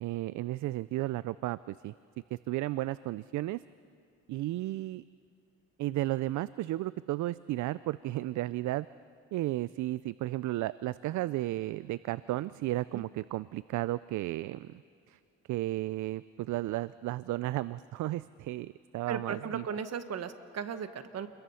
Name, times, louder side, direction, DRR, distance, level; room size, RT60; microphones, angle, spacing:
voice 1, 0.0-1.9 2.3-3.6 4.3-5.0 5.8-8.9 9.3-14.8 15.1-15.2 15.5-19.6, right 16 dB, 75° right, 17 dB, 0.5 m, -33 dB
voice 2, 19.1-21.3, right 7 dB, 55° right, 10 dB, 1.4 m, -36 dB
29.0 x 22.0 x 5.7 m, 2.4 s
cardioid pair, 90°, 30 cm